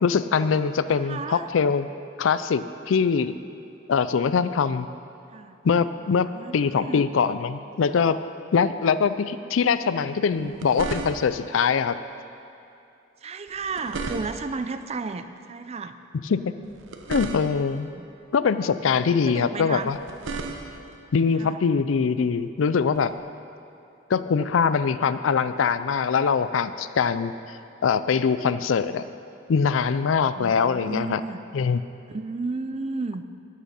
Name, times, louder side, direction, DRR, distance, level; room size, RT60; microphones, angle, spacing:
voice 1, 0.0-1.9 2.2-3.4 3.9-4.9 5.6-8.2 8.5-12.0 16.1-16.6 17.1-17.9 18.3-20.0 21.1-23.1 24.1-27.3 27.8-29.1 29.5-31.2 31.5-31.8, left 6 dB, 85° left, 13 dB, 0.4 m, -23 dB
voice 2, 0.9-1.5 5.3-5.6 6.3-7.0 10.3-10.7 13.2-16.0 17.9-18.1 19.3-19.9 21.4-21.6 30.3-31.4 32.1-33.2, right 3 dB, 35° right, 10 dB, 0.4 m, -33 dB
sound 1, 10.3-11.5 13.5-14.6 16.6-17.8 19.8-21.0 22.9-23.1, right 3 dB, 80° right, 0.9 m, -35 dB
12.5 x 7.4 x 5.5 m, 2.7 s
head